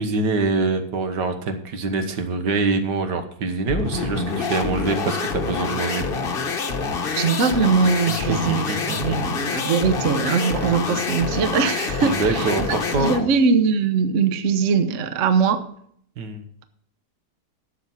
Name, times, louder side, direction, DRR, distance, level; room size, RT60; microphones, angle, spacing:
voice 1, 0.0-6.1 8.1-9.2 10.3-10.5 12.0-13.2 16.2-16.4, right 3 dB, 80° right, 7 dB, 1.8 m, -25 dB
sound 1, 3.7-13.3, left 4 dB, 40° left, 1.0 m, -26 dB
voice 2, 7.1-15.6, right 5 dB, 50° right, 9 dB, 1.1 m, -21 dB
12.0 x 7.3 x 5.7 m, 0.66 s
omnidirectional pair, 1.8 m